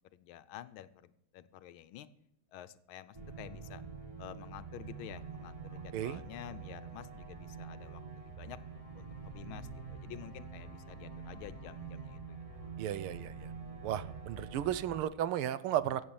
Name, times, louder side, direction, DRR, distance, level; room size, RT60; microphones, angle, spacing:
voice 1, 0.1-2.1 2.5-3.8 4.2-8.6 8.9-12.4, left 12 dB, 75° left, 14 dB, 1.5 m, -50 dB
sound 1, 3.1-15.0, right 5 dB, 15° right, 2.1 m, -46 dB
voice 2, 12.8-13.5 13.8-16.0, right 11 dB, 85° right, 16 dB, 1.6 m, -34 dB
16.0 x 7.5 x 7.1 m, 0.80 s
omnidirectional pair, 2.4 m